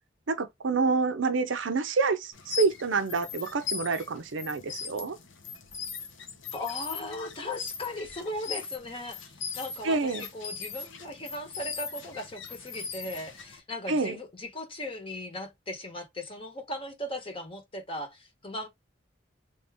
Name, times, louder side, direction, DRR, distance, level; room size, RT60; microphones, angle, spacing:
voice 1, 0.3-5.2 9.8-10.3 13.9-14.2, right 4 dB, 80° right, 0.6 m, -27 dB
sound 1, 2.3-13.6, left 6 dB, 85° left, 0.9 m, -39 dB
voice 2, 6.5-18.7, left 1 dB, 30° left, 1.0 m, -38 dB
3.4 x 2.6 x 3.5 m
head